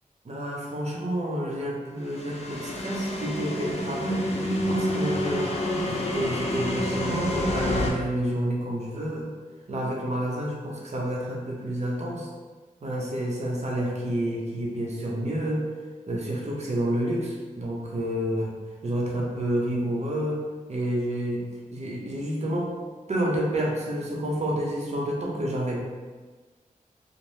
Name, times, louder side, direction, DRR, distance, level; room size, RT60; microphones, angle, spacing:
voice 1, 0.2-4.3 4.7-9.3 9.7-12.3 12.8-15.6 16.1-18.5 18.8-20.4 20.7-22.7 23.1-25.9, right 1 dB, 50° right, -3 dB, 0.7 m, -29 dB
sound 1, 2.1-7.9, left 1 dB, 50° left, 0.4 m, -28 dB
3.2 x 2.1 x 2.7 m, 1.3 s
cardioid pair, 60°, 14 cm